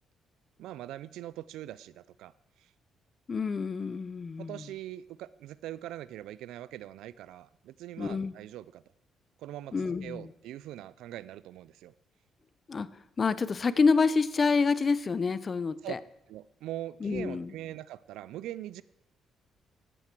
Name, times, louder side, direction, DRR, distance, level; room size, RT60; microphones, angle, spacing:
voice 1, 0.6-2.3 2.6-2.7 4.4-8.8 9.4-11.9 15.8-15.9 16.3-18.8, right 13 dB, 90° right, 18 dB, 0.3 m, -42 dB
voice 2, 3.3-4.6 8.0-8.3 9.7-10.3 12.7-12.9 13.2-16.0 17.0-17.5, left 4 dB, 35° left, 16 dB, 0.6 m, -27 dB
13.5 x 8.8 x 4.5 m, 0.86 s
cardioid pair, 90°, 0 cm